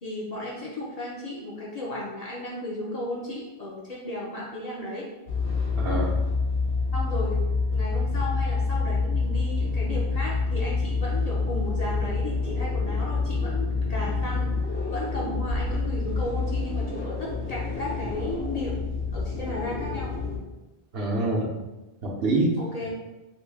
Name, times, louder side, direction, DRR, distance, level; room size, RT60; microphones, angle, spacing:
voice 1, 0.0-5.1 6.9-14.5 14.9-18.8 19.1-20.1 22.6-22.9, left 1 dB, 45° left, -5 dB, 0.6 m, -34 dB
sound 1, 5.3-20.4, left 4 dB, 70° left, 1.3 m, -27 dB
voice 2, 5.8-6.2 8.1-8.2 20.9-21.5 22.0-22.9, right 2 dB, 65° right, -3 dB, 1.0 m, -26 dB
3.1 x 2.6 x 3.3 m, 1.1 s
omnidirectional pair, 1.1 m